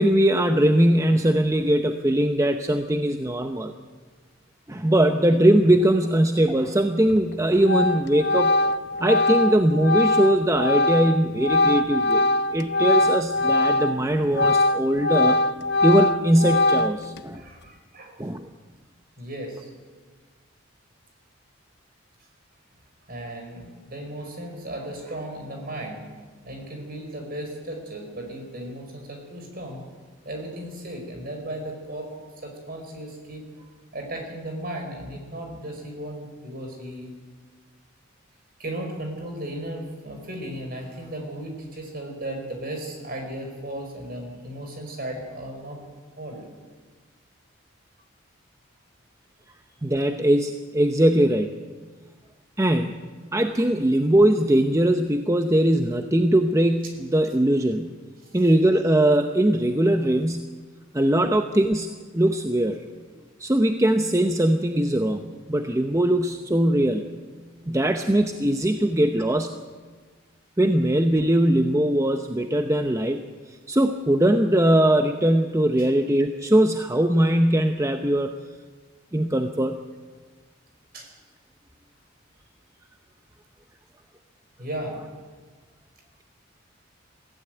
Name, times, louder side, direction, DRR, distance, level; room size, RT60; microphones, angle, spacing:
voice 1, 0.0-3.7 4.7-8.5 9.0-15.4 15.8-17.4 18.2-18.5 49.8-51.5 52.6-57.9 58.3-60.6 60.9-62.8 63.4-65.2 65.5-67.1 67.7-69.5 70.6-73.2 73.5-78.3 79.1-79.8, right 1 dB, 15° right, 6 dB, 0.7 m, -21 dB
Organ, 7.1-7.3 7.7-14.0 14.3-17.2, left 2 dB, 55° left, 0.7 m, -22 dB
voice 2, 17.4-18.3 19.2-19.7 23.1-26.1 26.4-29.8 30.2-32.1 32.4-37.1 38.6-45.8 46.2-46.4 58.2-58.4 80.9-81.1 84.6-85.0, right 1 dB, 45° right, 3 dB, 5.0 m, -35 dB
21.5 x 15.5 x 9.2 m, 1.5 s
head